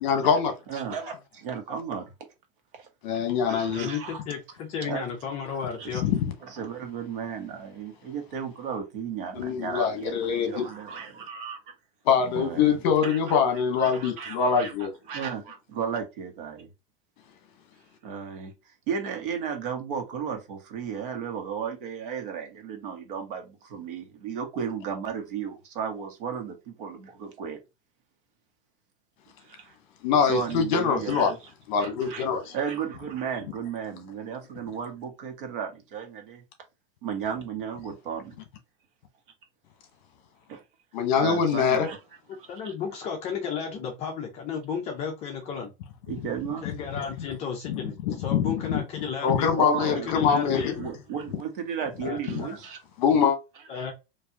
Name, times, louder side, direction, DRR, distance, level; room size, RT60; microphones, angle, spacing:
voice 1, 0.0-0.5 3.0-3.9 5.9-6.3 9.3-10.7 12.0-14.9 30.0-31.3 31.7-32.5 40.9-41.9 47.6-47.8 48.1-48.8 49.2-50.9 52.3-52.4 53.0-53.4, left 7 dB, 50° left, 1.1 m, -24 dB
voice 2, 0.7-2.1 2.8-2.9 3.5-4.2 4.8-5.1 5.5-6.0 6.4-11.6 12.3-12.8 13.0-13.4 13.8-14.7 15.1-16.7 18.0-18.5 18.9-27.6 29.4-29.7 30.2-31.4 31.8-32.2 32.5-36.4 37.0-38.4 40.5-40.6 41.1-42.0 42.4-42.7 46.1-46.7 49.6-50.1 50.8-52.8 53.8-53.9, right 7 dB, 60° right, 1.3 m, -34 dB
voice 3, 3.8-6.1 42.5-45.7 46.6-49.5 49.9-50.7 52.0-52.6 53.7-53.9, left 6 dB, 20° left, 0.6 m, -33 dB
4.5 x 2.6 x 2.8 m
supercardioid pair, 170°, 30 cm